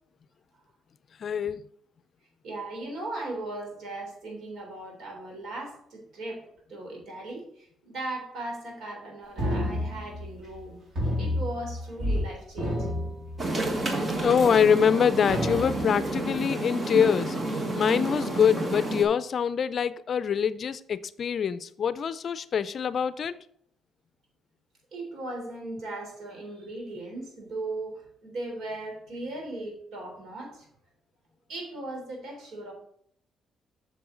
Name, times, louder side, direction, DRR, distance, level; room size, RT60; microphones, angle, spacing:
voice 1, 1.2-1.6 14.2-23.4, left 7 dB, 55° left, 0.4 m, -25 dB
voice 2, 2.4-6.4 6.7-10.8 11.2-13.0 24.9-30.7 31.5-32.7, right 2 dB, 75° right, 3.5 m, -38 dB
sound 1, 9.4-10.6 11.0-12.3 12.5-13.8 14.4-14.5 15.3-16.1, left 1 dB, 55° right, 3.7 m, -30 dB
sound 2, 13.4-19.0, right 2 dB, 35° right, 1.6 m, -30 dB
7.8 x 6.6 x 3.9 m
cardioid pair, 90°, 0 cm